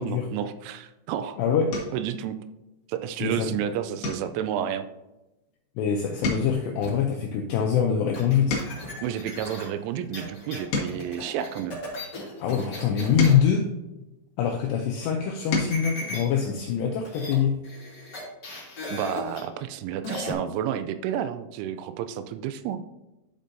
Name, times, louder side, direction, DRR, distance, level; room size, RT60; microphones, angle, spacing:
voice 1, 0.0-1.4 1.9-2.4 2.9-4.9 9.0-11.8 18.9-22.8, right 9 dB, 85° right, 11 dB, 3.0 m, -31 dB
sound 1, 0.8-1.1 1.7-2.1 2.6-3.0 3.3-3.5 4.0-5.8 6.1-9.0 9.6-12.1 12.8-14.6 15.1-15.9 17.3-17.4 17.7-17.8, left 3 dB, 60° left, 2.6 m, -34 dB
voice 2, 1.4-1.7 3.2-3.6 5.8-8.6 12.4-13.6 14.4-17.6, left 7 dB, 85° left, 2 dB, 2.4 m, -24 dB
sound 2, 6.8-7.1 8.1-13.4 15.7-16.4 16.7-16.8 17.0-17.4 17.6-19.4 20.0-20.3, left 2 dB, 30° left, 2.4 m, -37 dB
11.5 x 5.3 x 2.7 m, 0.98 s
omnidirectional pair, 5.6 m